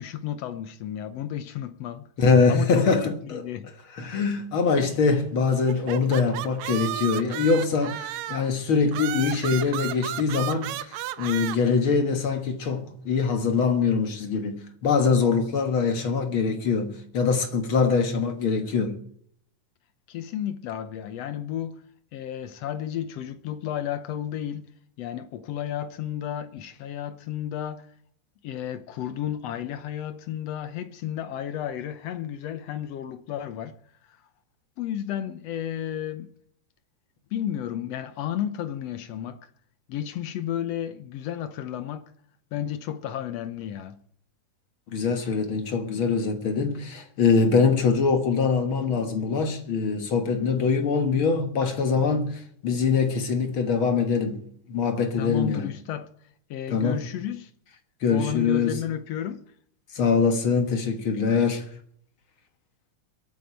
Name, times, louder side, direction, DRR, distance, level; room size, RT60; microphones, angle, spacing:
voice 1, 0.0-2.1 2.5-2.9 3.2-3.7 20.1-21.8 22.1-24.7 25.0-27.9 28.4-33.8 34.1-34.2 34.8-36.3 37.3-39.5 39.9-42.1 42.5-44.0 55.2-56.1 56.5-57.5 58.1-59.4, left 10 dB, 70° left, 1.7 m, -32 dB
voice 2, 2.2-3.4 4.0-19.0 44.9-54.4 54.7-55.7 56.7-57.0 58.0-58.7 59.9-61.6, left 5 dB, 50° left, 2.0 m, -23 dB
sound 1, 5.7-8.5 8.9-11.6, right 13 dB, 80° right, 2.0 m, -33 dB
23.0 x 9.2 x 4.5 m
omnidirectional pair, 3.4 m